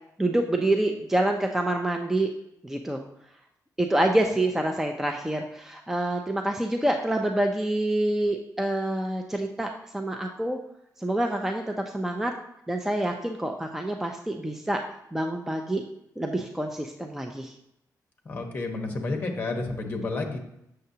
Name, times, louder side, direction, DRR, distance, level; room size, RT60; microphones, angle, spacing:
voice 1, 0.2-2.3 2.6-3.0 3.8-10.6 11.0-12.3 12.7-14.8 15.1-15.8 16.2-17.5, right 1 dB, 5° right, 3 dB, 0.4 m, -27 dB
voice 2, 18.2-20.4, left 3 dB, 30° left, 3 dB, 1.1 m, -30 dB
7.9 x 6.6 x 2.8 m, 0.80 s
wide cardioid pair, 145°, 7 cm